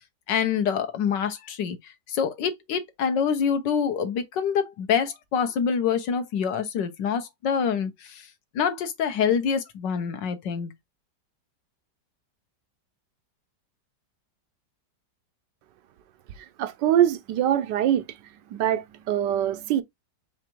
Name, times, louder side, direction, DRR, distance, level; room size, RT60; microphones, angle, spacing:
voice 1, 0.3-8.3 8.5-10.7, left 7 dB, 80° left, 1.6 m, -26 dB
voice 2, 16.4-18.2 18.5-19.8, right 11 dB, 80° right, 1.3 m, -24 dB
5.0 x 3.2 x 3.0 m
omnidirectional pair, 1.9 m